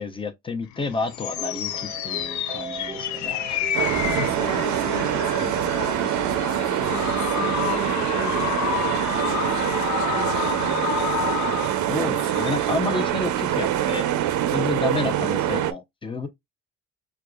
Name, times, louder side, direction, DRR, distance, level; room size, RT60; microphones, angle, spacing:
voice 1, 0.0-3.7 11.9-14.1 14.5-16.3, left 3 dB, 15° left, 0.7 m, -30 dB
sound 1, 0.7-13.1, left 11 dB, 70° left, 0.5 m, -30 dB
sound 2, 1.4-9.0, right 6 dB, 20° right, 0.4 m, -39 dB
sound 3, 3.7-15.7, right 12 dB, 75° right, 0.5 m, -24 dB
voice 2, 4.2-8.7 9.1-11.2 14.9-15.3, left 4 dB, 85° left, 1.2 m, -39 dB
4.7 x 2.4 x 2.3 m
cardioid pair, 90°, 30 cm